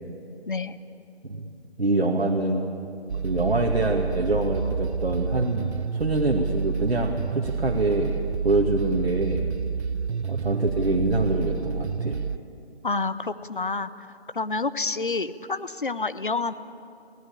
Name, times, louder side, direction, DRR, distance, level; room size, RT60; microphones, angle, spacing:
voice 1, 0.5-0.8 12.8-13.9 14.3-16.5, left 3 dB, 50° left, 13 dB, 0.9 m, -28 dB
voice 2, 1.8-2.6 3.2-8.1 8.4-9.5 10.2-12.2, right 2 dB, 65° right, -1 dB, 2.2 m, -25 dB
sound 1, 3.1-12.4, right 6 dB, 80° right, 0.6 m, -29 dB
24.5 x 17.5 x 8.7 m, 2.5 s
figure-of-eight pair, 170°, 32 cm